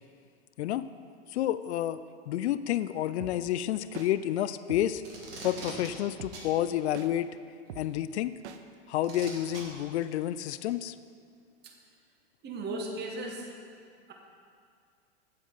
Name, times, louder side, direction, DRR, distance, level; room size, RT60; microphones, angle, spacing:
voice 1, 1.3-2.0 2.3-5.0 5.4-7.3 7.8-8.3 8.9-10.9, left 12 dB, 70° left, 14 dB, 0.5 m, -30 dB
sound 1, 3.2-3.3 3.9-4.1 4.7-4.8 5.4-5.6 6.2-6.3 6.9-7.1 7.7-7.8 8.4-8.6, right 10 dB, 75° right, 0.7 m, -42 dB
Packing tape duct tape, 5.0-5.9 6.3-6.5 7.8-7.9 9.0-9.6 10.7-10.8, right 3 dB, 60° right, 2.2 m, -42 dB
voice 2, 12.4-13.4, right 2 dB, 30° right, 1 dB, 1.4 m, -35 dB
8.9 x 8.5 x 3.9 m, 2.2 s
hypercardioid pair, 95°, 34 cm